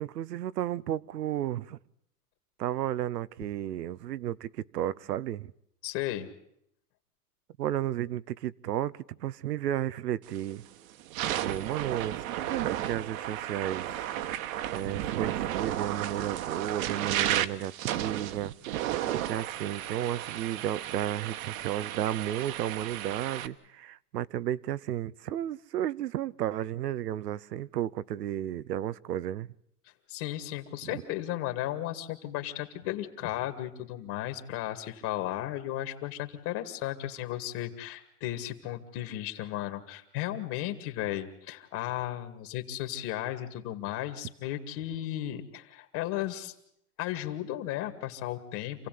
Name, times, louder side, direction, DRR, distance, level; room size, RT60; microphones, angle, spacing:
voice 1, 0.0-1.8 2.6-5.5 7.6-10.6 11.3-14.1 14.4-29.5 30.8-31.0, right 12 dB, 85° right, 0.9 m, -33 dB
voice 2, 5.8-6.3 30.1-46.5 47.0-48.9, left 13 dB, 40° left, 2.5 m, -35 dB
sound 1, 10.3-10.5 11.0-23.5, right 12 dB, 60° right, 1.6 m, -33 dB
27.5 x 16.0 x 9.4 m
hypercardioid pair, 135°, 47 cm